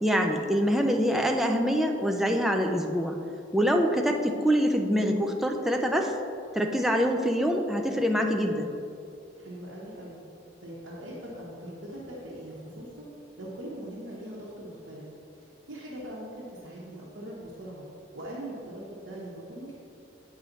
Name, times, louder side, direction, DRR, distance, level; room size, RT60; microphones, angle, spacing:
voice 1, 0.0-3.2 3.5-6.1 6.5-8.7, equal, ahead, 2 dB, 0.5 m, -25 dB
voice 2, 9.4-10.2 10.6-13.1 13.4-15.1 15.7-17.9 18.1-19.7, right 1 dB, 65° right, -7 dB, 1.2 m, -41 dB
8.6 x 4.9 x 4.0 m, 2.6 s
head